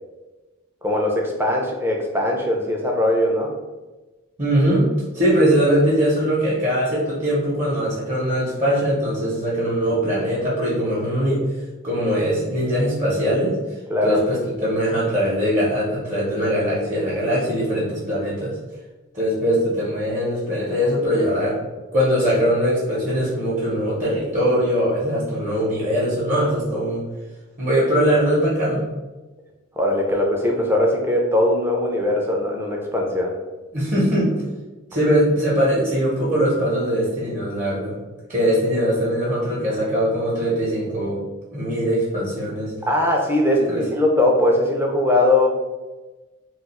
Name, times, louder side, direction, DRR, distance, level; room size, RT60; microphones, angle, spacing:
voice 1, 0.8-3.5 13.9-14.2 29.8-33.3 42.9-45.5, left 1 dB, 10° right, 0 dB, 0.4 m, -20 dB
voice 2, 4.4-4.9 5.1-11.4 11.8-13.6 14.0-18.6 19.1-21.6 21.9-27.0 27.6-28.8 33.7-34.3 34.9-38.0 38.3-41.2 41.5-42.7 43.5-43.8, equal, 35° right, -7 dB, 0.8 m, -21 dB
2.4 x 2.3 x 4.0 m, 1.2 s
head